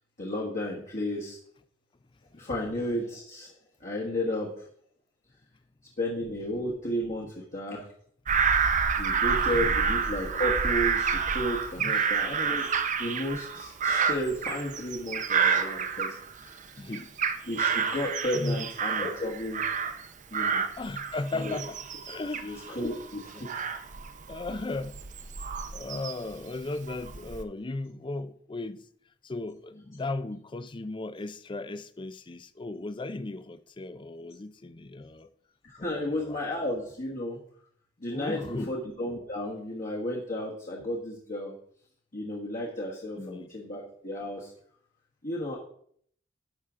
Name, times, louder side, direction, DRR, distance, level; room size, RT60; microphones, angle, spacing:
voice 1, 0.2-1.4 2.4-3.5 3.8-4.5 6.0-7.9 9.0-12.7 13.0-16.6 17.5-19.6 20.3-20.6 21.3-21.5 22.4-23.5 35.6-37.4 38.0-41.5 42.1-44.5 45.2-45.6, left 1 dB, 45° left, 1.6 m, -33 dB
Bird vocalization bird call bird song / Crow, 8.3-16.6 16.9-20.1 20.3-26.3 26.9-27.4, right 6 dB, 40° right, 0.6 m, -29 dB
voice 2, 9.3-9.8 11.8-12.1 16.8-17.1 18.3-18.7 20.8-21.8 22.0-22.8 23.4-23.5 24.3-25.0 25.7-28.9 29.2-35.3 35.8-36.6 38.1-38.7 43.2-43.5, left 2 dB, 25° left, 0.5 m, -36 dB
11.5 x 6.4 x 3.7 m
head